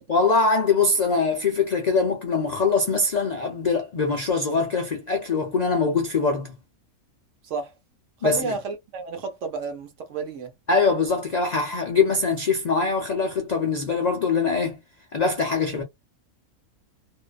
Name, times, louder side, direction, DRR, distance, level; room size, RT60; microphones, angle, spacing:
voice 1, 0.1-6.5 8.2-8.5 10.7-14.8 15.1-15.8, left 4 dB, 75° left, 0.3 m, -23 dB
voice 2, 7.4-7.7 8.2-10.5, right 4 dB, 65° right, 1.0 m, -31 dB
2.5 x 2.2 x 2.3 m
omnidirectional pair, 1.5 m